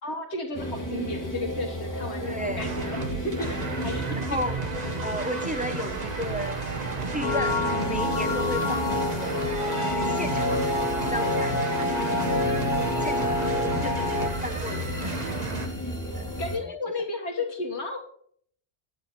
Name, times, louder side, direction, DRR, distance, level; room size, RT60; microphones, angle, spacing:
voice 1, 0.0-3.0 3.2-4.5 12.9-13.5 16.4-18.0, left 2 dB, 75° left, 3 dB, 1.8 m, -33 dB
sound 1, 0.5-16.6, equal, 15° left, 2.1 m, -35 dB
voice 2, 2.2-2.7 4.2-4.6 5.0-6.6 7.1-9.5 9.8-10.7 11.1-11.6 13.0-15.4 16.1-16.7, equal, 10° right, 7 dB, 0.7 m, -34 dB
sound 2, 2.6-15.7, right 3 dB, 40° right, 1.5 m, -33 dB
sound 3, 7.2-14.3, left 2 dB, 45° left, 1.5 m, -27 dB
11.5 x 9.0 x 4.5 m, 0.62 s
omnidirectional pair, 1.1 m